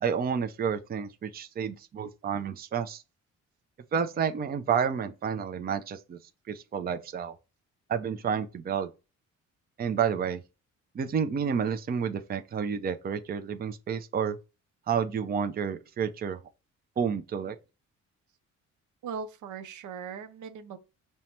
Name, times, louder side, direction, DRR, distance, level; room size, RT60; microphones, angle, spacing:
voice 1, 0.0-3.0 3.9-6.2 6.5-7.3 7.9-8.9 9.8-10.4 10.9-14.4 14.9-16.4 17.0-17.6, right 7 dB, 30° right, 0.5 m, -30 dB
voice 2, 19.0-20.8, right 6 dB, 75° right, 0.6 m, -39 dB
5.4 x 2.1 x 2.9 m
cardioid pair, 90°, 30 cm